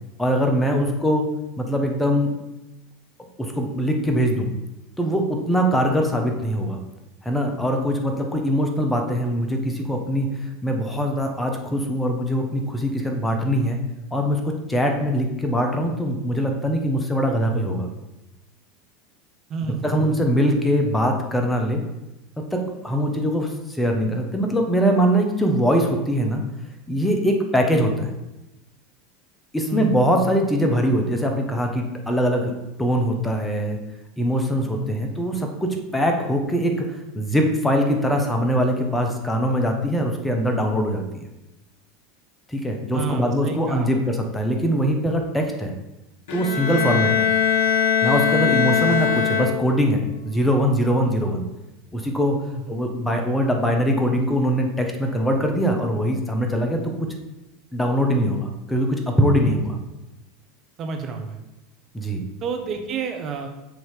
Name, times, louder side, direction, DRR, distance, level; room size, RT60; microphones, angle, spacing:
voice 1, 0.2-1.3 1.6-2.3 3.4-4.5 5.0-6.8 7.2-10.3 10.6-13.8 14.1-17.9 19.8-21.8 22.5-23.5 23.8-26.4 26.9-28.1 29.5-32.5 32.8-33.8 34.2-36.7 37.1-41.2 42.5-45.7 46.3-47.3 48.0-51.4 51.9-52.4 52.7-56.9 57.7-59.8 61.9-62.2, equal, 10° left, 3 dB, 1.2 m, -22 dB
voice 2, 19.5-20.2 29.7-30.0 34.6-34.9 42.9-43.9 46.7-47.1 51.0-51.2 52.4-52.8 59.4-59.6 60.8-61.4 62.4-63.5, right 5 dB, 40° right, 4 dB, 1.1 m, -31 dB
Bowed string instrument, 46.3-50.0, left 8 dB, 70° left, 0.8 m, -21 dB
7.1 x 3.2 x 5.0 m, 0.96 s
hypercardioid pair, 95°, 0 cm